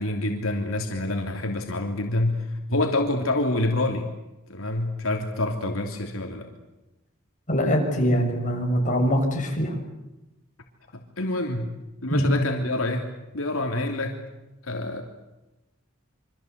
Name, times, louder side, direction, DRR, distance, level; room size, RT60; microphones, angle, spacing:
voice 1, 0.0-4.1 4.5-6.5 10.9-11.8 12.0-13.1 13.3-14.2 14.6-15.0, left 2 dB, 80° left, 2 dB, 3.2 m, -27 dB
voice 2, 7.5-9.7 12.1-12.2, equal, 40° left, 1 dB, 6.8 m, -23 dB
27.5 x 25.0 x 8.3 m, 1.0 s
head